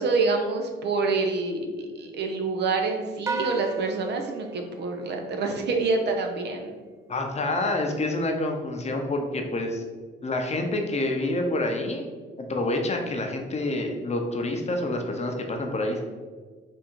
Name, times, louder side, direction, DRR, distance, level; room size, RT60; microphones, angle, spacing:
voice 1, 0.0-6.7, right 3 dB, 60° right, 4 dB, 0.7 m, -27 dB
sound 1, 3.3-5.8, right 4 dB, 15° right, 0.4 m, -35 dB
voice 2, 7.1-9.8 10.2-12.1 12.4-16.0, left 2 dB, 35° left, 3 dB, 0.7 m, -27 dB
3.7 x 2.6 x 4.5 m, 1.5 s
cardioid pair, 90°, 20 cm